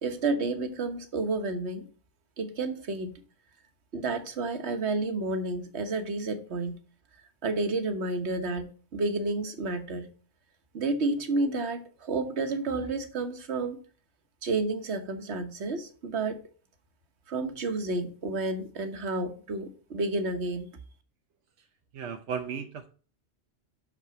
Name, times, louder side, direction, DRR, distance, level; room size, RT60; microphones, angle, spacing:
voice 1, 0.0-1.9 2.4-3.2 3.9-6.8 7.4-10.1 10.7-13.8 14.4-16.4 17.3-20.7, right 3 dB, 75° right, 1.4 m, -30 dB
voice 2, 21.9-22.9, right 6 dB, 90° right, 1.1 m, -35 dB
6.3 x 5.8 x 5.8 m
omnidirectional pair, 1.2 m